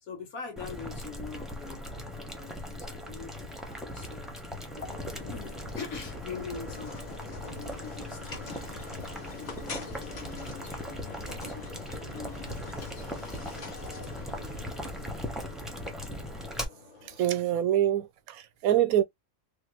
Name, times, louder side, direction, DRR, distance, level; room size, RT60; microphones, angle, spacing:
voice 1, 0.0-8.7 9.1-11.7 12.1-13.7, left 5 dB, 75° left, 1.6 m, -44 dB
Boiling, 0.6-16.6, equal, ahead, 0.4 m, -39 dB
sound 1, 4.8-17.4, left 4 dB, 40° left, 0.7 m, -45 dB
voice 2, 17.1-19.0, right 11 dB, 90° right, 1.1 m, -25 dB
3.3 x 2.3 x 2.9 m
omnidirectional pair, 1.5 m